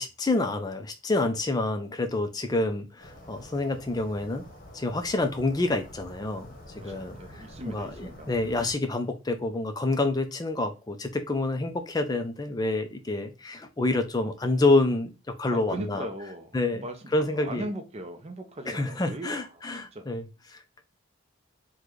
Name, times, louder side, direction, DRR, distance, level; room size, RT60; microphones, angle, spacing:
voice 1, 0.0-4.4 4.7-15.1 15.4-16.1 16.5-16.8 17.1-17.7 18.7-20.8, left 2 dB, 20° left, 0.4 m, -28 dB
sound 1, 3.0-8.7, equal, 45° left, 0.9 m, -48 dB
voice 2, 6.8-8.3 15.5-19.4 19.9-20.0, right 1 dB, 30° right, 0.5 m, -38 dB
3.7 x 2.2 x 3.1 m
head